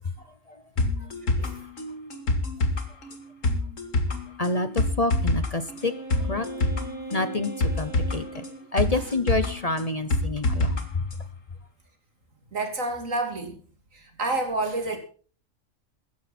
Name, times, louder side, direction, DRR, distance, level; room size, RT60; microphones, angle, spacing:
sound 1, 0.8-10.8 11.1-11.2, left 2 dB, 80° left, 2.3 m, -27 dB
voice 1, 4.4-5.9 6.2-6.5 7.1-8.4 8.7-11.0, left 2 dB, 35° left, 12 dB, 0.9 m, -28 dB
Wind instrument woodwind instrument, 5.8-8.7, right 2 dB, 50° left, 5.7 m, -38 dB
voice 2, 12.5-13.6 13.9-15.0, right 2 dB, 80° right, 5 dB, 3.2 m, -29 dB
16.0 x 13.5 x 4.3 m, 0.42 s
omnidirectional pair, 1.3 m